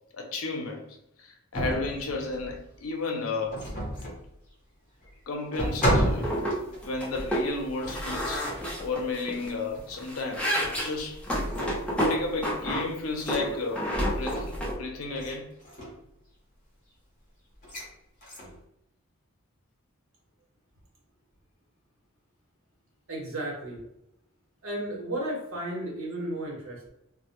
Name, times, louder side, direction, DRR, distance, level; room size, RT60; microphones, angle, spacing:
voice 1, 0.1-3.7 5.3-6.3 6.7-8.5 8.8-11.2 11.9-13.9 14.2-14.5 14.8-15.5, left 3 dB, 80° left, 0.5 m, -33 dB
sound 1, 1.5-2.7 3.5-4.3 5.0-5.1 5.5-7.0 7.8-8.8 9.7-9.9 10.7-11.1 11.4-12.0 13.1-13.4 14.1-14.7 15.1-15.3 15.6-16.0 17.6-17.9 18.2-18.6, equal, 40° left, 0.7 m, -32 dB
sound 2, 5.8-5.9 6.2-6.6 6.8-7.5 7.9-9.5 9.9-12.9 13.3-14.7, equal, 5° left, 0.4 m, -30 dB
voice 2, 23.1-23.8 24.6-26.9, right 1 dB, 75° right, 0.9 m, -34 dB
2.1 x 2.1 x 2.8 m
head